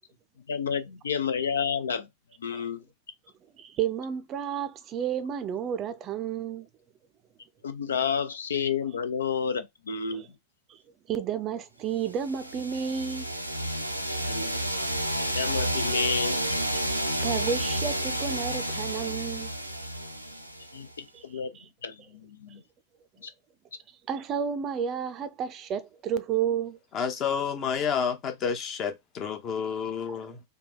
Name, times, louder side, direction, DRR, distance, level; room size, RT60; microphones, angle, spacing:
voice 1, 0.5-2.1 2.4-2.8 7.6-10.2 14.2-14.6 14.9-15.0 15.3-16.4 20.7-21.5 21.8-22.6 23.2-23.3, left 6 dB, 70° left, 0.4 m, -30 dB
voice 2, 3.6-6.7 10.1-10.3 10.7-10.8 11.1-13.3 16.9-19.5 21.1-21.2 21.5-21.6 24.1-26.8, right 8 dB, 30° right, 0.5 m, -31 dB
sound 1, 12.2-20.9, right 1 dB, 90° right, 0.4 m, -30 dB
voice 3, 26.9-30.4, left 7 dB, 35° left, 0.8 m, -30 dB
3.4 x 2.2 x 3.8 m
figure-of-eight pair, 90°, 0 cm